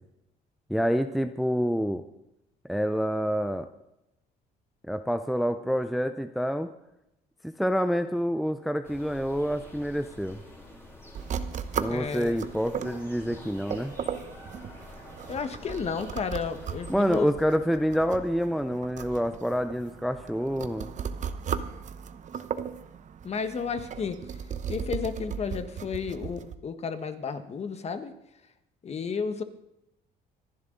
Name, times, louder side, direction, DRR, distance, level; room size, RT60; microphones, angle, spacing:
voice 1, 0.7-2.0 2.7-3.7 4.9-6.7 7.4-10.4 11.8-13.9 16.9-20.9, equal, ahead, 9 dB, 0.6 m, -27 dB
sound 1, 8.8-17.3, left 1 dB, 15° left, 3.7 m, -48 dB
sound 2, 11.2-26.6, right 7 dB, 45° right, 1.0 m, -37 dB
voice 2, 11.9-12.4 15.3-17.3 23.2-24.2 24.7-28.1 28.8-29.4, left 5 dB, 40° left, 9 dB, 1.4 m, -32 dB
26.0 x 11.0 x 3.9 m, 0.87 s
cardioid pair, 110°, 17 cm